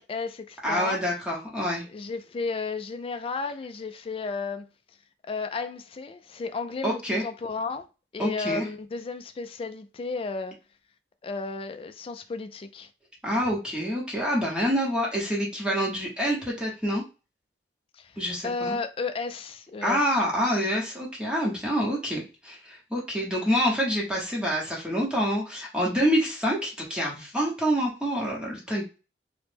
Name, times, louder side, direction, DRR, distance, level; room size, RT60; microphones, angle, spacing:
voice 1, 0.0-1.0 1.8-4.7 5.2-7.9 8.1-10.6 11.2-12.9 17.9-20.7, left 4 dB, 30° left, 0.3 m, -33 dB
voice 2, 0.6-1.8 6.8-7.2 8.2-8.6 13.2-17.0 18.2-18.7 19.8-28.8, equal, 5° right, 0.9 m, -27 dB
3.0 x 2.1 x 3.3 m
head